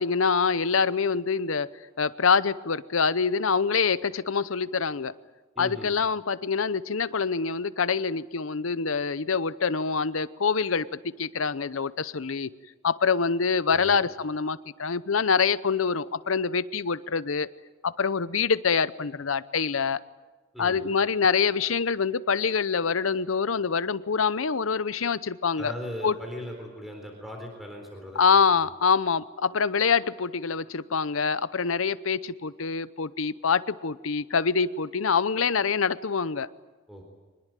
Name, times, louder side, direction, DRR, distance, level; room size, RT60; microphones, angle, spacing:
voice 1, 0.0-1.7 2.0-5.1 5.6-12.5 12.8-17.5 17.8-20.0 20.6-25.7 26.0-26.1 28.1-36.5, left 5 dB, 85° left, 15 dB, 0.8 m, -25 dB
voice 2, 5.6-5.9 13.7-14.0 20.5-20.8 25.6-28.2 36.9-37.0, equal, ahead, 2 dB, 4.1 m, -38 dB
24.5 x 20.5 x 9.1 m, 1.3 s
head